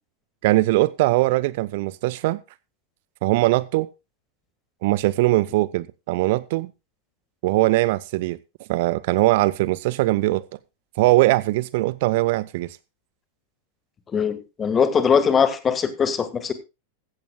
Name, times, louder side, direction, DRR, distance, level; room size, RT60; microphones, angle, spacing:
voice 1, 0.4-2.4 3.2-3.9 4.8-6.7 7.4-8.4 8.7-10.4 11.0-12.8, right 19 dB, 50° right, 0.5 m, -21 dB
voice 2, 14.1-16.5, left 6 dB, 20° left, 1.6 m, -21 dB
15.5 x 14.5 x 2.3 m
figure-of-eight pair, 90°, 0 cm